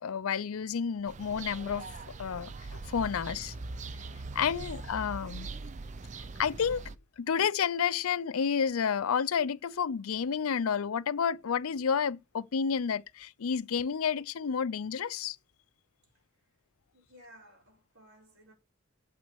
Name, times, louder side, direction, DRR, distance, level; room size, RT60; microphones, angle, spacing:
voice 1, 0.0-1.9 2.2-3.5 4.4-5.5 6.4-6.9 7.2-15.4, left 7 dB, 90° left, 0.5 m, -30 dB
sound 1, 1.1-7.0, right 3 dB, 35° right, 0.5 m, -42 dB
voice 2, 16.9-18.5, equal, 75° right, 4.7 m, -56 dB
9.0 x 6.1 x 8.0 m
head